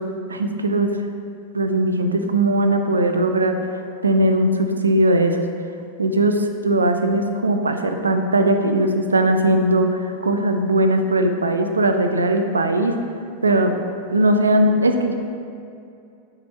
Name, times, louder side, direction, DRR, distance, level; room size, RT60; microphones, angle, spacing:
voice 1, 0.3-0.9 1.5-3.5 4.0-5.4 6.0-12.9 13.4-13.7 14.1-15.1, right 1 dB, 75° right, 6 dB, 0.4 m, -19 dB
6.8 x 4.8 x 3.2 m, 2.5 s
figure-of-eight pair, 90°, 0 cm